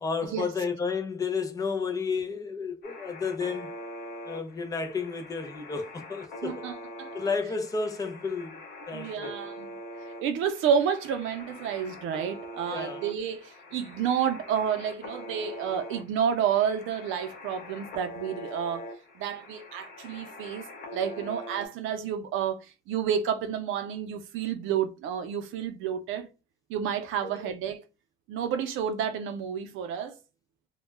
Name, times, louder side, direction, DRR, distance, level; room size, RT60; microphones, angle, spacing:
voice 1, 0.0-3.7 4.3-6.6 7.1-8.6 8.9-9.3 12.7-13.0 27.2-27.4, left 5 dB, 15° left, 0.4 m, -32 dB
sound 1, 2.8-21.7, left 1 dB, 50° left, 0.7 m, -43 dB
voice 2, 6.4-7.1 8.9-9.7 10.2-18.9 19.2-20.6 20.9-26.3 26.7-27.8 28.3-30.2, right 8 dB, 75° right, 0.5 m, -30 dB
2.2 x 2.1 x 3.2 m
cardioid pair, 160°, 21 cm